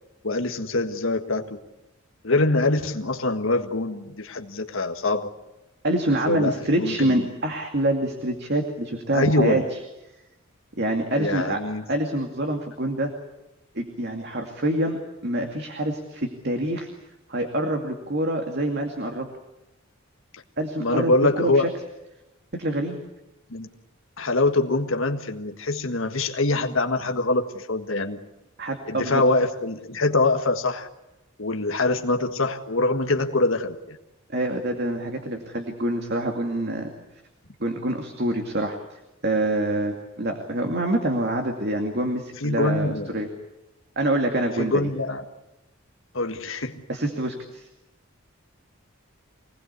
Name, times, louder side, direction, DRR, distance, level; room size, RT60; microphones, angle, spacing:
voice 1, 0.2-1.6 2.2-5.3 6.3-7.2 9.1-9.6 11.1-11.8 20.8-21.7 23.5-23.7 24.2-28.2 28.9-30.9 31.4-34.0 42.4-43.2 44.6-45.2 46.1-46.7, left 2 dB, 70° left, 4 dB, 1.6 m, -24 dB
voice 2, 5.8-9.8 10.8-11.6 11.9-13.1 13.7-16.9 17.3-19.3 20.6-21.5 22.5-23.0 28.6-29.2 34.3-36.9 37.6-43.3 44.0-44.9 46.9-47.7, right 1 dB, 50° right, 3 dB, 2.4 m, -26 dB
26.0 x 19.5 x 8.3 m, 0.96 s
head